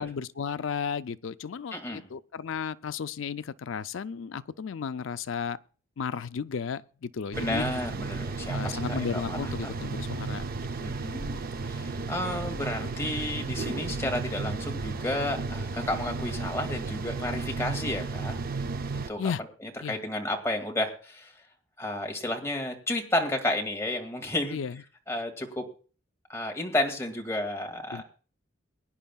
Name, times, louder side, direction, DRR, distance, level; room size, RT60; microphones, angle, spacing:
voice 1, 0.0-5.6 6.0-7.7 8.5-10.4 19.2-19.4 19.8-20.0 24.5-24.8 27.9-28.0, left 6 dB, 70° left, 0.4 m, -34 dB
voice 2, 1.7-2.0 7.4-9.7 10.8-18.4 18.9-19.2 19.9-21.3 21.8-24.6 25.1-25.6 26.3-28.0, left 1 dB, 15° left, 2.2 m, -32 dB
sound 1, 7.3-19.1, right 3 dB, 50° right, 0.5 m, -33 dB
23.0 x 10.0 x 2.3 m
head